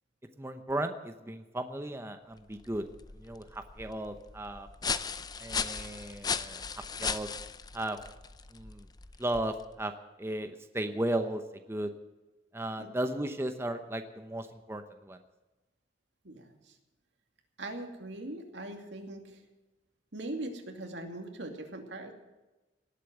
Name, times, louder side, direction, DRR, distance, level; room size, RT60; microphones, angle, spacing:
voice 1, 0.4-2.8 3.2-4.7 5.4-6.6 7.0-7.3 7.7-8.0 8.5-8.9 9.2-9.9 10.2-11.4 11.7-11.9 12.5-15.2, right 1 dB, 15° right, 7 dB, 0.8 m, -35 dB
sound 1, 2.4-9.8, left 5 dB, 20° left, 0.5 m, -37 dB
voice 2, 16.2-16.7 17.6-19.4 20.1-22.1, right 1 dB, 80° right, 4 dB, 2.5 m, -41 dB
18.5 x 8.4 x 7.9 m, 1.1 s
head